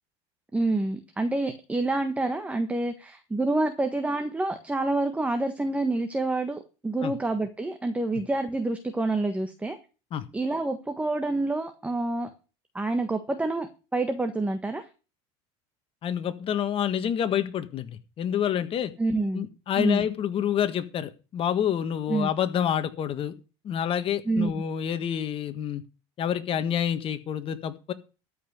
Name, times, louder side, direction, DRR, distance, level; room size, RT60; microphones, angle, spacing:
voice 1, 0.5-9.8 10.3-12.3 12.7-14.8 19.0-19.5 19.8-20.1 22.1-22.3 24.3-24.5, right 2 dB, 10° right, 7 dB, 1.4 m, -27 dB
voice 2, 16.0-18.9 19.3-23.3 23.6-25.8 26.2-27.9, left 9 dB, 40° left, 10 dB, 1.5 m, -28 dB
13.0 x 5.6 x 8.1 m, 0.34 s
supercardioid pair, 110°, 14 cm